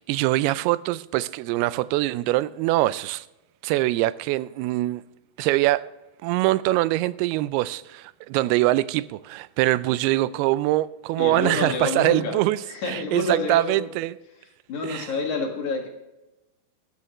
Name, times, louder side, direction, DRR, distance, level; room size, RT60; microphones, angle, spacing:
voice 1, 0.0-3.3 3.6-5.0 5.4-5.9 6.2-14.2 14.8-15.1, right 17 dB, 90° right, 2.5 m, -23 dB
voice 2, 11.2-12.4 12.7-13.9 14.7-15.9, left 3 dB, 55° left, 2.8 m, -28 dB
14.5 x 12.0 x 3.1 m
omnidirectional pair, 4.4 m